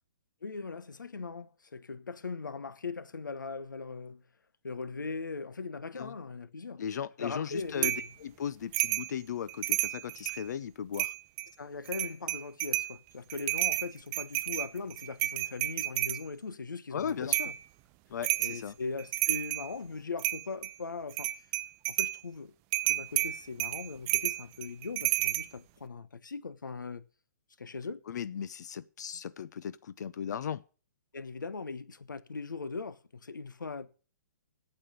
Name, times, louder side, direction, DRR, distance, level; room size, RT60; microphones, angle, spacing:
voice 1, 0.4-4.2 4.6-6.8 7.2-8.0 11.6-17.5 18.4-21.3 21.9-22.5 22.8-27.0 27.6-28.0 31.1-33.9, left 4 dB, 90° left, 1.1 m, -40 dB
voice 2, 6.8-7.9 8.2-11.1 16.9-17.5 18.1-18.7 28.1-30.6, left 8 dB, 65° left, 0.6 m, -37 dB
sound 1, 7.8-8.1 8.7-9.1 9.5-10.4 10.9-11.5 11.9-12.9 13.3-16.2 17.3-17.6 18.2-18.6 19.0-19.7 20.2-20.7 21.1-22.2 22.7-25.5, right 17 dB, 30° right, 0.6 m, -31 dB
8.8 x 8.0 x 8.2 m
hypercardioid pair, 135°, 10 cm